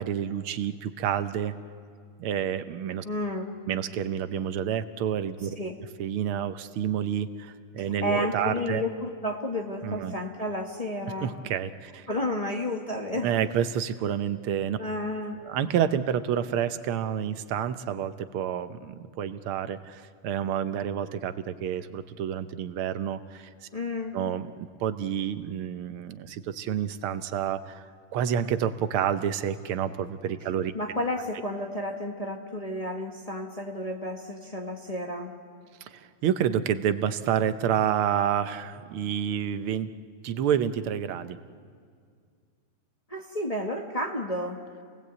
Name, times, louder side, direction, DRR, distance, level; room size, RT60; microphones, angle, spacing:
voice 1, 0.0-1.5 2.2-3.0 3.7-5.6 6.0-8.8 9.8-10.1 11.2-12.1 13.2-14.8 15.4-23.5 24.1-27.8 28.1-30.7 35.8-39.9 40.2-41.4, right 9 dB, 80° right, 11 dB, 1.7 m, -29 dB
voice 2, 3.0-3.5 5.6-5.7 7.8-11.3 12.1-13.3 14.8-15.4 23.7-24.2 30.7-35.3 43.1-44.6, left 1 dB, 20° left, 1 dB, 1.1 m, -31 dB
28.5 x 18.5 x 8.2 m, 2.1 s
omnidirectional pair, 2.3 m